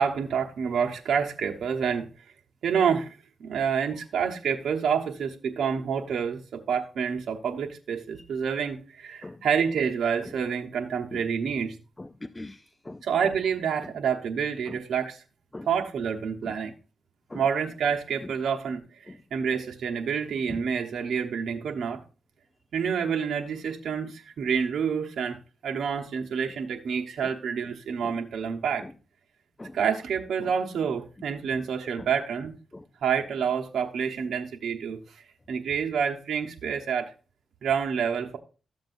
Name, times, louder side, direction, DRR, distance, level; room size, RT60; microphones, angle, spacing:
voice 1, 0.0-2.1 2.6-11.8 13.0-15.2 15.6-16.7 17.3-22.0 22.7-28.9 29.7-32.6 33.0-37.1 37.6-38.4, right 7 dB, 80° right, 1.0 m, -28 dB
voice 2, 12.0-13.0 14.7-14.8 15.5-15.7 16.4-16.5 17.3-17.4 20.5-20.6 27.2-27.3 28.0-28.1 29.6-29.8 32.0-32.1 32.7-32.8, left 2 dB, 20° left, 0.5 m, -41 dB
13.0 x 7.5 x 2.6 m
cardioid pair, 75°, 0 cm